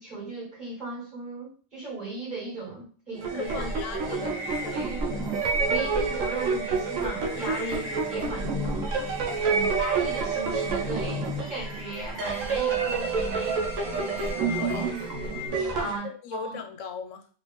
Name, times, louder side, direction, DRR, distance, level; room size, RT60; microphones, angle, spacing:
voice 1, 0.0-3.7 4.1-4.2 4.7-5.3 5.6-14.9 15.7-16.6, right 3 dB, 35° right, -8 dB, 1.7 m, -37 dB
sound 1, 3.1-16.0, right 4 dB, 75° right, 1.0 m, -29 dB
voice 2, 3.3-5.2 9.3-9.8 14.6-14.9 15.7-17.3, left 6 dB, 75° left, 6 dB, 0.9 m, -39 dB
sound 2, 3.4-15.5, left 1 dB, 25° left, 1.1 m, -38 dB
3.1 x 2.8 x 3.0 m, 0.41 s
omnidirectional pair, 1.4 m